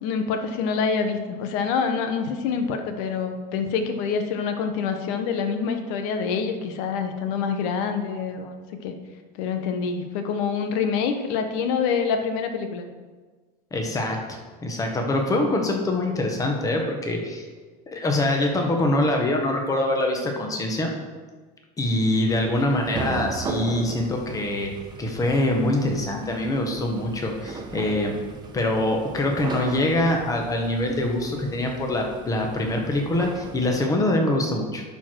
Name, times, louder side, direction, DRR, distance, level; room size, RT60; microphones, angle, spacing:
voice 1, 0.0-8.9 9.3-12.9, left 6 dB, 70° left, 6 dB, 1.1 m, -26 dB
voice 2, 13.7-17.4 17.9-20.9 21.8-24.7 25.0-28.1 28.5-34.8, left 1 dB, 15° left, 2 dB, 1.2 m, -24 dB
sound 1, 22.3-33.7, right 4 dB, 20° right, 0.9 m, -37 dB
11.0 x 4.6 x 4.6 m, 1.4 s
cardioid pair, 150°, 20 cm